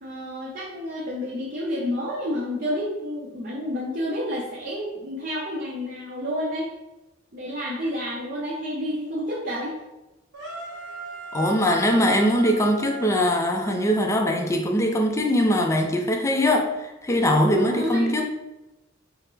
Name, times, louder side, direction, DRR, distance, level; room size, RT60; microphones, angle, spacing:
voice 1, 0.0-6.7 7.3-9.8 17.5-18.1, equal, 45° right, -5 dB, 0.7 m, -30 dB
sound 1, 10.3-14.4, right 3 dB, 65° right, 1.0 m, -37 dB
voice 2, 11.3-18.3, equal, 15° left, 2 dB, 0.4 m, -21 dB
4.2 x 2.0 x 4.0 m, 1.0 s
head